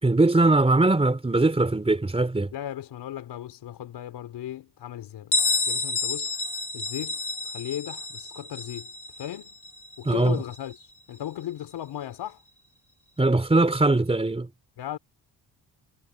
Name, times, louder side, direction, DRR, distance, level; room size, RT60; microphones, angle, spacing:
voice 1, 0.0-2.5 10.1-10.4 13.2-14.5, right 2 dB, 15° right, 3.9 m, -21 dB
voice 2, 2.5-5.3 5.7-6.3 6.7-8.9 9.2-9.6 10.0-12.4 14.8-15.0, left 12 dB, 80° left, 4.3 m, -36 dB
Bell, 5.3-10.8, left 3 dB, 50° left, 3.4 m, -30 dB
cardioid pair, 130°, 39 cm